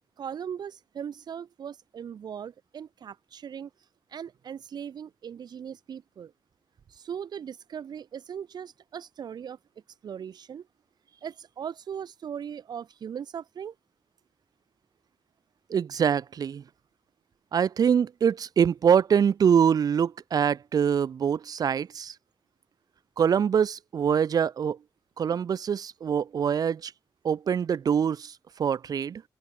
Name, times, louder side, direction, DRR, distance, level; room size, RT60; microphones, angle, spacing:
voice 1, 0.2-3.7 4.1-6.3 6.9-9.6 10.0-10.7 11.2-13.7, right 8 dB, 85° right, 1.4 m, -39 dB
voice 2, 15.7-16.6 17.5-22.1 23.2-24.8 25.2-26.9 27.2-29.2, right 7 dB, 65° right, 0.4 m, -24 dB
open air
wide cardioid pair, 90°, 7 cm